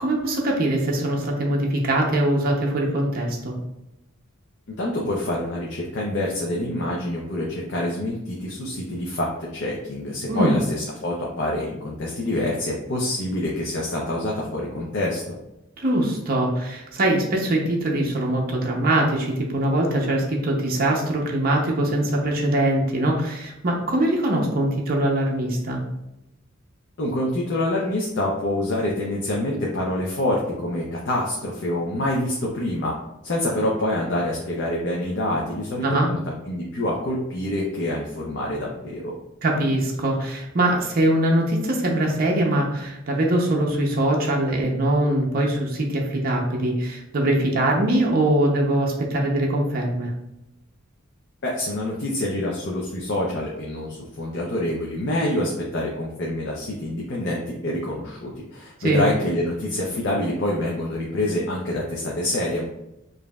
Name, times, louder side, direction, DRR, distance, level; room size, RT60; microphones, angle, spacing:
voice 1, 0.0-3.6 10.3-10.6 15.8-25.8 35.8-36.1 39.4-50.1 58.8-59.0, right 1 dB, 45° right, -1 dB, 0.6 m, -22 dB
voice 2, 4.8-15.3 27.0-32.9 33.2-36.2 36.5-39.1 51.4-62.6, left 1 dB, 55° left, -3 dB, 0.6 m, -26 dB
5.0 x 2.6 x 2.2 m, 0.90 s
head